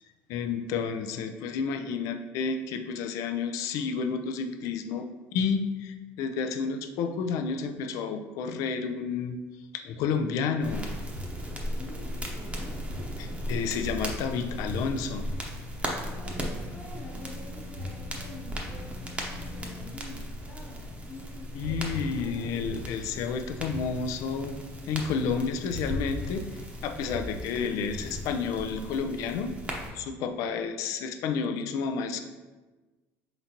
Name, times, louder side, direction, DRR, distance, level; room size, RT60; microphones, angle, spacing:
voice 1, 0.3-9.4 9.7-10.9 13.2-15.3 21.5-24.6 24.9-29.5 29.9-32.2, left 5 dB, 70° left, 8 dB, 0.4 m, -31 dB
sound 1, 10.6-29.9, equal, 20° right, 0.8 m, -36 dB
voice 2, 12.3-12.7 16.0-22.6, left 1 dB, 45° left, -5 dB, 1.2 m, -47 dB
4.4 x 3.9 x 2.8 m, 1.2 s
supercardioid pair, 100°, 6 cm